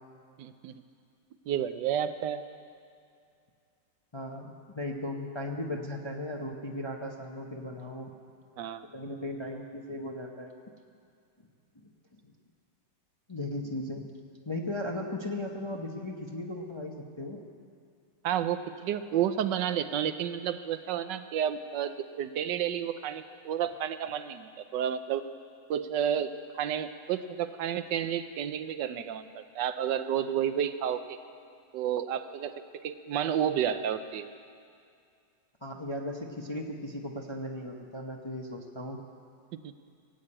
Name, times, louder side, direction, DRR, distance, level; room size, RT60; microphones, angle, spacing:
voice 1, 0.4-0.7 1.5-2.4 8.6-8.8 18.2-25.2 25.7-31.2 31.7-34.3, right 9 dB, 80° right, 11 dB, 1.3 m, -31 dB
voice 2, 4.1-8.1 8.9-10.5 12.1-12.2 13.3-14.1 14.5-17.4 35.6-39.0, left 1 dB, 25° left, 1 dB, 0.6 m, -37 dB
18.0 x 8.5 x 8.7 m, 2.3 s
omnidirectional pair, 2.0 m